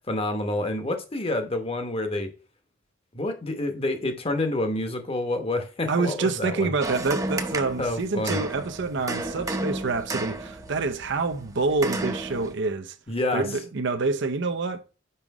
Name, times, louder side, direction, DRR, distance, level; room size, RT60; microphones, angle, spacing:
voice 1, 0.1-2.3 3.1-6.7 7.8-8.4 13.1-13.5, left 2 dB, 30° left, 1.0 m, -28 dB
voice 2, 5.9-13.0 13.3-14.8, right 3 dB, 65° right, 0.6 m, -27 dB
sound 1, 6.8-12.5, right 2 dB, 15° right, 0.7 m, -32 dB
5.6 x 5.0 x 4.7 m
head